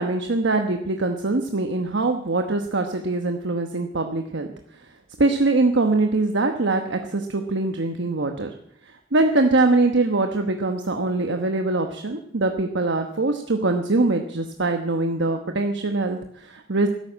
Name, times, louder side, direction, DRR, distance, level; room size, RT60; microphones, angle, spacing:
voice 1, 0.0-4.5 5.2-8.5 9.1-16.9, right 2 dB, 65° right, 5 dB, 1.1 m, -23 dB
13.5 x 12.0 x 8.6 m, 0.73 s
head